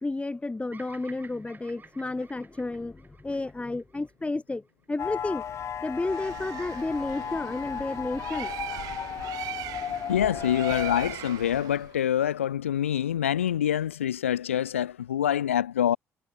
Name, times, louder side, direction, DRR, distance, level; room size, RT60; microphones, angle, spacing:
voice 1, 0.0-5.4 5.8-8.5, left 2 dB, 15° left, 3.3 m, -32 dB
Bird vocalization bird call bird song, 0.7-5.0, right 4 dB, 30° right, 5.6 m, -53 dB
sound 1, 5.0-11.1, left 8 dB, 45° left, 0.6 m, -35 dB
Bird, 5.9-12.0, right 17 dB, 65° right, 2.9 m, -40 dB
voice 2, 10.1-16.0, left 10 dB, 80° left, 1.1 m, -26 dB
figure-of-eight pair, 50°, 7 cm